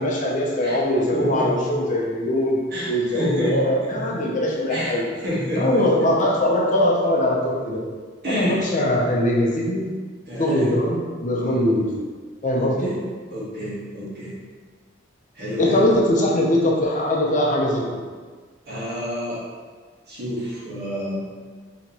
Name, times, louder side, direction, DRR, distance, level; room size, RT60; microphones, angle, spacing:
voice 1, 0.0-2.6 2.9-5.0 5.6-7.8 8.3-9.8 10.4-11.8 12.4-12.9 15.6-17.8, left 1 dB, 45° left, -2 dB, 0.6 m, -21 dB
voice 2, 1.1-1.7 2.7-3.6 3.9-4.0 4.7-5.0 5.2-5.9 8.2-8.6 10.3-10.7 11.4-11.6 12.6-12.9 13.3-14.3 15.3-15.9 18.7-19.4 20.1-21.3, equal, 60° right, -7 dB, 1.2 m, -29 dB
3.8 x 2.9 x 2.9 m, 1.5 s
head